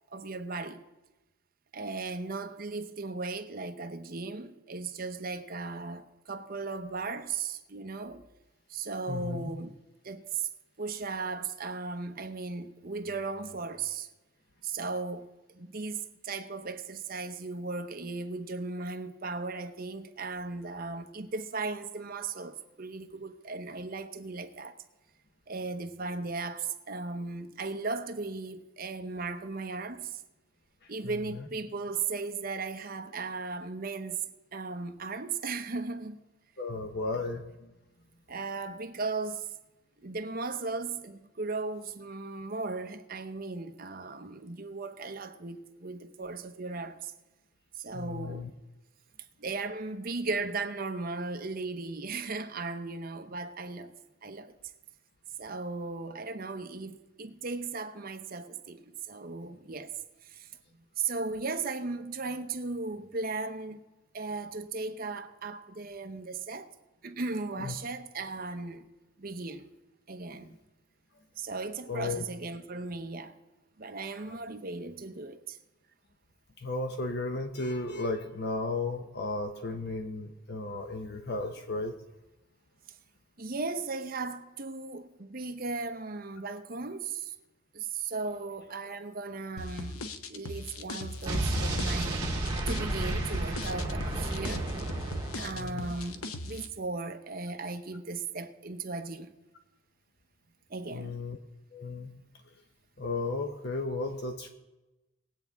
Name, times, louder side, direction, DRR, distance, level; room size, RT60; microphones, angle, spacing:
voice 1, 0.1-0.8 1.7-8.2 8.7-9.8 10.0-10.5 10.8-14.1 14.6-15.3 15.5-24.8 25.5-30.2 30.9-34.2 34.5-36.2 38.3-39.5 40.0-47.1 47.7-48.5 49.4-53.9 54.2-54.5 55.4-59.9 60.2-60.5 61.0-63.8 64.1-66.7 67.0-68.9 69.2-69.7 70.1-70.5 71.4-73.3 73.8-75.6 82.9-83.0 83.4-87.3 87.7-92.2 92.7-94.7 95.3-99.3 100.7-101.2, right 3 dB, 40° right, 0.8 m, -36 dB
voice 2, 9.1-9.5 30.8-31.5 36.6-37.7 47.9-48.5 67.6-67.7 71.9-72.2 74.3-74.4 76.6-81.9 95.5-95.9 100.9-101.4 101.7-102.1 103.0-104.5, left 3 dB, 50° left, 0.8 m, -34 dB
sound 1, 89.6-96.7, left 2 dB, 90° left, 0.9 m, -39 dB
Explosion, 91.3-96.0, right 2 dB, 20° right, 2.2 m, -32 dB
20.0 x 8.3 x 3.5 m
head